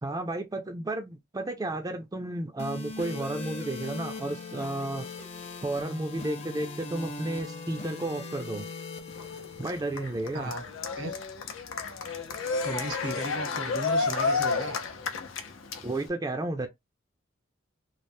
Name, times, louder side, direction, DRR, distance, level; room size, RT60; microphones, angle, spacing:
voice 1, 0.0-5.1 5.6-8.7 9.6-10.5 15.8-16.7, right 2 dB, 20° right, 0.4 m, -32 dB
sound 1, 2.6-10.6, left 3 dB, 35° left, 0.7 m, -40 dB
Cheering, 9.1-16.1, left 4 dB, 85° left, 0.6 m, -31 dB
voice 2, 10.3-10.7 11.0-11.1 12.6-14.8, right 1 dB, 80° right, 1.1 m, -35 dB
3.2 x 2.1 x 2.6 m
head